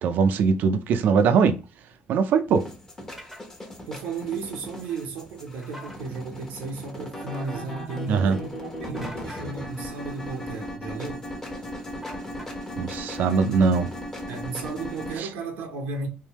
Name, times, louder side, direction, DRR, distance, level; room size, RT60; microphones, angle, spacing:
voice 1, 0.0-1.6 2.1-2.6 8.1-8.4 12.8-13.9 15.2-15.3, right 5 dB, 65° right, 0.5 m, -21 dB
sound 1, 2.6-15.2, left 1 dB, 15° left, 1.1 m, -37 dB
sound 2, 3.2-3.4 5.6-6.0 8.9-9.5 12.0-12.8, equal, 5° right, 0.8 m, -42 dB
voice 2, 3.9-11.3 14.3-16.1, right 4 dB, 90° right, 0.8 m, -34 dB
3.5 x 2.6 x 3.0 m
cardioid pair, 110°, 3 cm